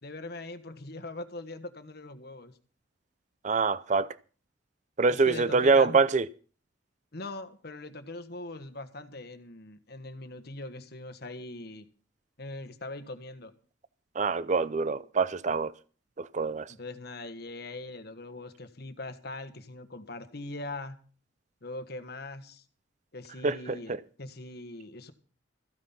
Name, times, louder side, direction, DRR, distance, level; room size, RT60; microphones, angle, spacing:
voice 1, 0.0-2.5 5.1-6.0 7.1-11.8 12.4-13.5 16.7-21.0 21.6-22.6 23.1-25.1, left 2 dB, 55° left, 1.4 m, -41 dB
voice 2, 3.4-4.1 5.0-6.3 14.2-15.7 16.2-16.7 23.4-24.0, right 4 dB, 40° right, 0.5 m, -25 dB
15.0 x 9.2 x 5.9 m
head